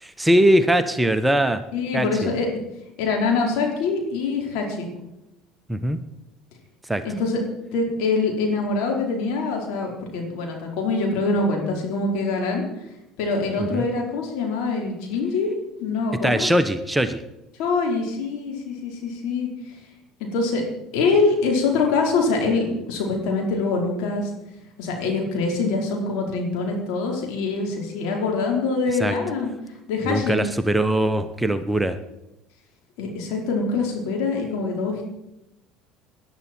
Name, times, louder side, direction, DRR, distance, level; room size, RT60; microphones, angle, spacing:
voice 1, 0.0-1.6 1.9-2.3 5.7-6.0 6.9-7.0 13.6-13.8 16.2-17.2 29.0-29.2 30.0-32.0, right 1 dB, 10° right, 9 dB, 1.0 m, -21 dB
voice 2, 1.7-2.5 3.0-4.9 7.0-7.4 7.7-12.6 13.2-15.5 15.8-16.5 17.6-19.8 20.2-20.6 20.9-24.3 24.8-29.5 29.9-30.4 33.0-35.0, left 3 dB, 65° left, 0 dB, 4.4 m, -24 dB
19.0 x 11.0 x 4.5 m, 0.92 s
hypercardioid pair, 70°, 0 cm